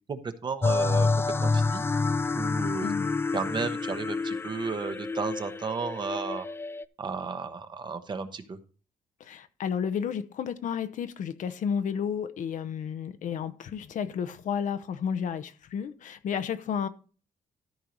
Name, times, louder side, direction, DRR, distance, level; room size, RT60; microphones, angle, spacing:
voice 1, 0.1-1.8 2.3-2.9 3.3-6.5 7.0-8.6, right 5 dB, 35° right, 1.0 m, -33 dB
sound 1, 0.6-6.8, left 3 dB, 15° left, 0.3 m, -28 dB
voice 2, 2.8-3.1 9.2-16.9, left 7 dB, 70° left, 0.9 m, -32 dB
13.5 x 4.6 x 5.3 m
cardioid pair, 145°, 14 cm